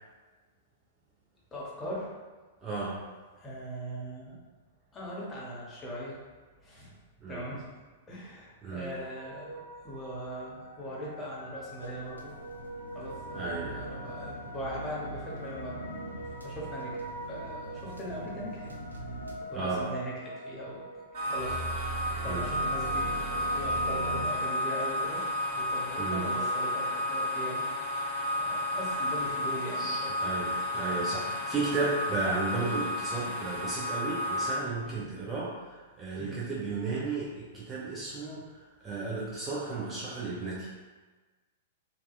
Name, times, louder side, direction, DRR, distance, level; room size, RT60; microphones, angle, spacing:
voice 1, 1.5-2.1 3.4-4.4 4.9-6.2 6.6-6.9 7.3-7.6 8.1-12.3 12.9-15.8 16.4-18.7 19.4-20.8 21.3-25.2 25.5-27.6 28.3-30.1 34.8-35.1 36.2-36.4, equal, 15° left, -6 dB, 0.7 m, -40 dB
voice 2, 2.6-3.0 7.2-7.5 8.6-8.9 13.3-14.0 19.5-19.9 22.3-22.5 26.0-26.3 29.8-40.7, right 3 dB, 15° right, -7 dB, 0.5 m, -34 dB
sound 1, 8.9-24.3, right 2 dB, 60° left, 0.8 m, -42 dB
sound 2, 11.8-19.4, right 1 dB, 80° right, 0.3 m, -44 dB
sound 3, 21.1-34.5, left 1 dB, 45° right, 1.2 m, -32 dB
2.7 x 2.2 x 2.2 m, 1.3 s
figure-of-eight pair, 100°, 0 cm